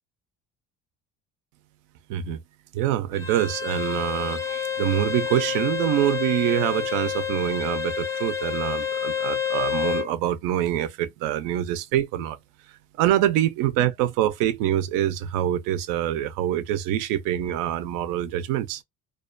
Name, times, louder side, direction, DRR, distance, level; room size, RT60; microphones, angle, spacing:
voice 1, 2.1-2.4 2.7-12.4 13.0-18.8, right 12 dB, 85° right, 0.5 m, -25 dB
Bowed string instrument, 3.1-10.1, left 8 dB, 10° left, 0.4 m, -29 dB
2.3 x 2.2 x 2.4 m
supercardioid pair, 90°, 31 cm